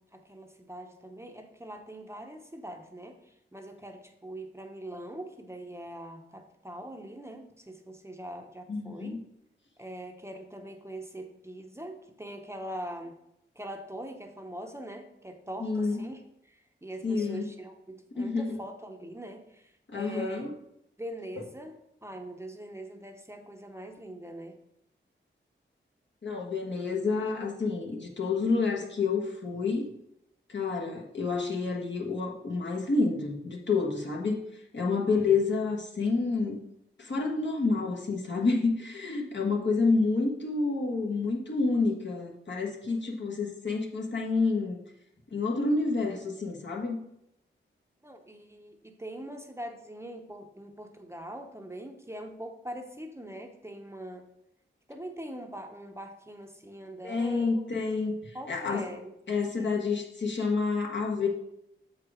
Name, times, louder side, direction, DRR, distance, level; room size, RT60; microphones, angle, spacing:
voice 1, 0.0-9.2 9.8-13.2 13.5-20.5 21.0-24.6 34.9-35.0 48.0-54.2 54.9-57.5 58.3-59.1 59.6-59.7, right 1 dB, 15° right, 4 dB, 0.8 m, -42 dB
voice 2, 8.7-9.2 15.6-16.0 17.0-17.4 18.2-18.5 19.9-20.5 26.2-29.8 30.5-34.4 34.7-36.6 37.0-44.8 45.3-47.0 57.0-58.9 59.3-61.3, left 4 dB, 60° left, -1 dB, 1.4 m, -29 dB
7.2 x 4.8 x 4.9 m, 0.79 s
wide cardioid pair, 80°, 21 cm